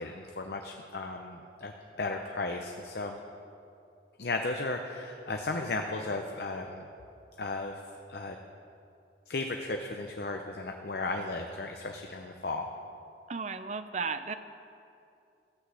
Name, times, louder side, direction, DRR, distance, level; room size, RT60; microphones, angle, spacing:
voice 1, 0.0-1.7 2.0-3.2 4.2-6.9 7.4-7.8 8.1-8.4 9.3-12.7, left 3 dB, 60° left, 3 dB, 0.7 m, -35 dB
voice 2, 13.3-14.3, right 5 dB, 40° right, 10 dB, 0.5 m, -34 dB
14.0 x 6.2 x 8.1 m, 2.6 s
head